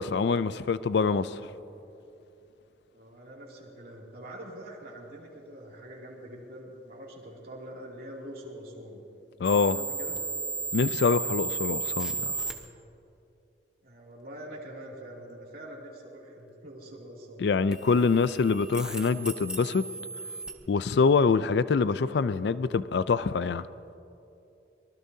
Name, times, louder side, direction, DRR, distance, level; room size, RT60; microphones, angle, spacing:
voice 1, 0.0-1.4 9.4-9.8 10.7-12.4 17.4-19.9 20.7-23.6, left 5 dB, 65° left, 0.4 m, -25 dB
voice 2, 2.9-9.0 9.4-10.2 13.8-17.5, right 1 dB, 50° right, 2.7 m, -44 dB
sound 1, 9.4-12.5 17.7-20.5, right 4 dB, 5° right, 1.0 m, -34 dB
24.0 x 19.5 x 2.8 m
head